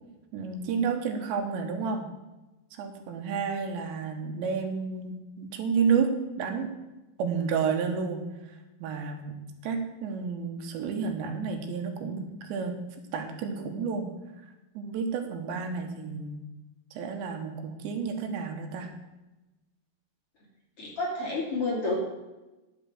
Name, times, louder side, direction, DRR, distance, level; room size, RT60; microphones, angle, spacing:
voice 1, 0.3-2.1 2.8-6.7 7.2-8.2 8.8-9.4 9.6-12.8 13.1-14.1 14.8-16.4 17.0-18.9, right 5 dB, 80° right, 5 dB, 3.5 m, -30 dB
voice 2, 20.8-21.9, left 2 dB, 35° left, -4 dB, 3.2 m, -29 dB
10.5 x 7.7 x 7.6 m, 1.1 s
omnidirectional pair, 5.1 m